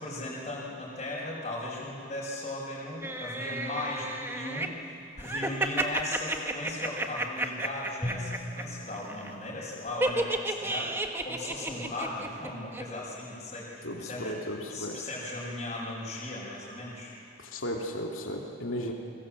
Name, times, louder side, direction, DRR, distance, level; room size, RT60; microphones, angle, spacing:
voice 1, 0.0-14.3 14.7-17.1, left 1 dB, 30° left, -7 dB, 5.8 m, -37 dB
sound 1, 3.0-4.7 5.2-8.6 8.9-9.3 10.0-12.5 12.7-12.8, right 2 dB, 10° right, 1.3 m, -32 dB
Drum, 8.0-10.4, equal, 15° left, 2.1 m, -40 dB
voice 2, 13.8-15.0 17.4-18.9, equal, 90° left, 0 dB, 2.6 m, -35 dB
29.0 x 23.0 x 7.7 m, 2.6 s
head